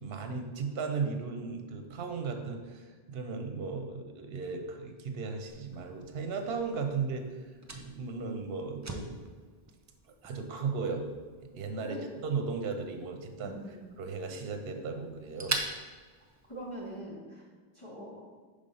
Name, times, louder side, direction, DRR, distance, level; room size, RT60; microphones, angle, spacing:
voice 1, 0.0-7.2 7.7-9.2 10.2-11.1 11.6-15.6, right 5 dB, 75° right, 5 dB, 0.9 m, -36 dB
Fire, 5.5-17.0, right 2 dB, 25° right, 0.3 m, -44 dB
voice 2, 11.8-12.1 13.4-13.9 16.5-17.4 17.7-18.3, equal, 30° left, -6 dB, 0.9 m, -42 dB
5.1 x 3.5 x 5.4 m, 1.5 s
omnidirectional pair, 1.0 m